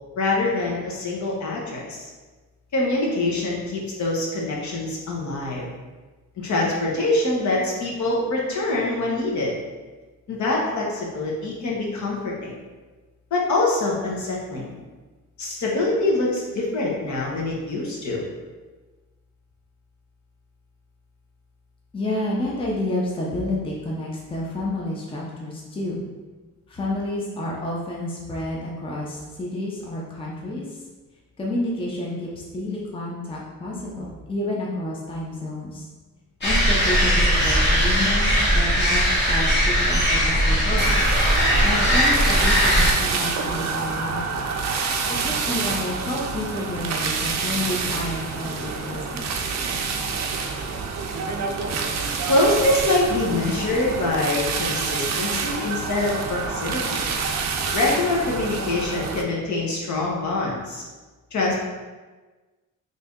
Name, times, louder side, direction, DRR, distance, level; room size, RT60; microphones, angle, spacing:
voice 1, 0.2-2.1 2.7-5.7 6.4-9.5 10.3-12.6 13.3-14.7 15.4-18.2 52.2-57.0 57.7-60.8 61.3-61.6, left 2 dB, 60° left, -3 dB, 1.0 m, -24 dB
voice 2, 21.9-26.0 26.7-30.8 31.4-35.8 36.4-40.9 41.6-44.4 45.1-49.3, left 1 dB, 15° left, -4 dB, 0.5 m, -30 dB
sound 1, 36.4-42.9, equal, 35° left, 1.1 m, -19 dB
sound 2, 40.8-59.2, right 5 dB, 55° right, 0.5 m, -27 dB
3.2 x 2.7 x 3.6 m, 1.3 s
cardioid pair, 130°, 32 cm